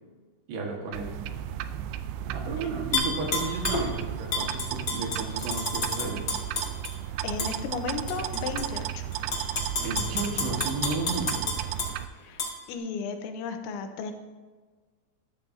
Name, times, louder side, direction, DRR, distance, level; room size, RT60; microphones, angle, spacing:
voice 1, 0.5-1.1 2.3-6.2 9.8-11.5, right 3 dB, 70° right, 0 dB, 3.6 m, -33 dB
sound 1, 0.9-12.1, right 11 dB, 90° right, 2.9 m, -34 dB
Tap / Glass, 2.9-3.9 4.3-6.9 7.4-7.5 8.1-8.6 9.1-11.9 12.4-12.5, left 3 dB, 40° left, 1.7 m, -30 dB
voice 2, 7.2-9.1 12.2-12.4 12.7-14.1, left 5 dB, 90° left, 6 dB, 3.2 m, -34 dB
13.5 x 13.5 x 2.7 m, 1.4 s
omnidirectional pair, 5.2 m